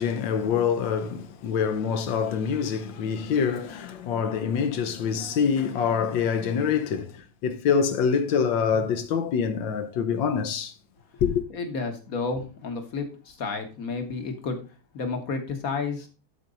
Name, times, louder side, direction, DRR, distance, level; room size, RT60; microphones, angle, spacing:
voice 1, 0.0-10.7 11.2-11.4, left 6 dB, 70° left, 1.4 m, -25 dB
voice 2, 11.5-14.6 14.9-16.1, left 4 dB, 45° left, 1.4 m, -31 dB
12.0 x 4.5 x 3.9 m
omnidirectional pair, 2.4 m